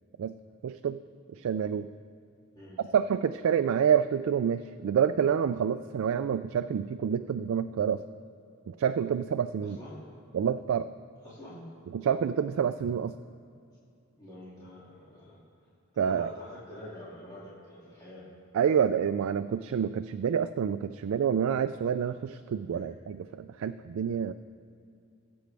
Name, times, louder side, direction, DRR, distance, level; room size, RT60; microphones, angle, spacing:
voice 1, 0.6-1.0 1.3-1.9 2.8-8.0 8.7-9.8 10.3-10.9 11.9-13.1 16.0-16.3 18.5-24.3, right 8 dB, 80° right, 11 dB, 0.3 m, -28 dB
voice 2, 9.6-10.0 11.2-11.7 14.1-15.4 15.9-18.3 22.7-22.8, left 1 dB, 20° left, -9 dB, 2.6 m, -46 dB
19.0 x 7.8 x 3.4 m, 2.5 s
head